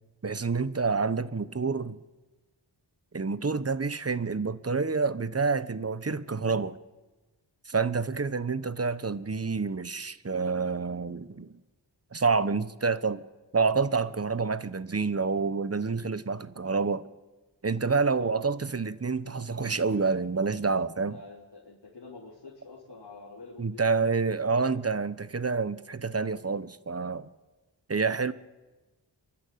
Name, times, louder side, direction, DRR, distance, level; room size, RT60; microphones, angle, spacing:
voice 1, 0.2-2.0 3.1-6.7 7.7-11.6 12.1-13.2 13.5-17.0 17.6-21.2 23.6-27.3 27.9-28.3, right 4 dB, 35° right, 1.0 m, -28 dB
voice 2, 21.1-24.8, left 3 dB, 65° left, 3.7 m, -48 dB
29.0 x 11.5 x 8.5 m
wide cardioid pair, 65°, 45 cm